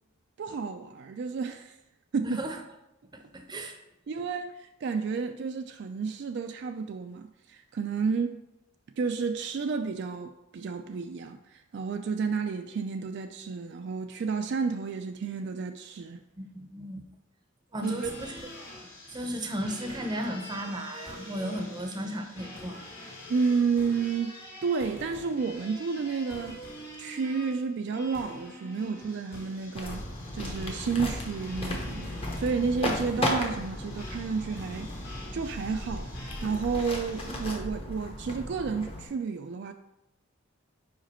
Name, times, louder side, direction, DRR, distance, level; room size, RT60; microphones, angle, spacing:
voice 1, 0.4-1.7 2.1-2.4 4.1-8.4 9.0-16.2 17.8-18.1 23.3-24.4 24.6-26.6 27.0-30.0 30.3-34.9 35.3-39.7, right 5 dB, 55° right, 0.3 m, -31 dB
voice 2, 2.2-2.6 3.1-3.8 16.4-17.0 17.7-18.3 19.1-22.9, equal, 20° right, 0.6 m, -35 dB
sound 1, 17.8-37.5, left 1 dB, 50° left, 1.8 m, -45 dB
sound 2, 29.7-39.1, left 1 dB, 30° left, 0.9 m, -35 dB
5.0 x 5.0 x 4.3 m
head